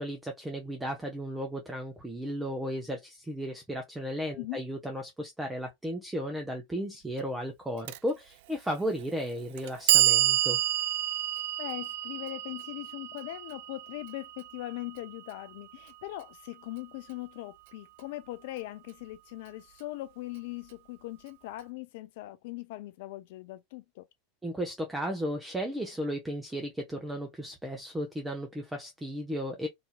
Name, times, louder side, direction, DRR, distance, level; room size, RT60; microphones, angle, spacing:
voice 1, 0.0-10.6 24.4-29.7, equal, 10° right, 0.8 m, -35 dB
Clock, 7.9-8.0 8.9-9.0 9.6-15.6, right 15 dB, 65° right, 0.3 m, -29 dB
voice 2, 11.6-24.1, left 17 dB, 65° left, 0.3 m, -40 dB
3.9 x 2.7 x 2.2 m
hypercardioid pair, 90°, 0 cm